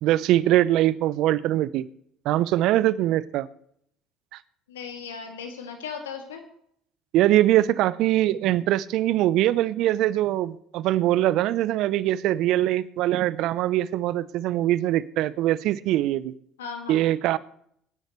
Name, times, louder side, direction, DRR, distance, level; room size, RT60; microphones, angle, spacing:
voice 1, 0.0-1.9 2.2-3.5 4.3-4.4 7.1-16.3 16.9-17.4, right 14 dB, 60° right, 18 dB, 0.7 m, -22 dB
voice 2, 4.7-6.4 16.6-17.0, left 6 dB, 85° left, 4 dB, 2.4 m, -37 dB
25.0 x 10.5 x 3.2 m, 0.70 s
hypercardioid pair, 60°, 0 cm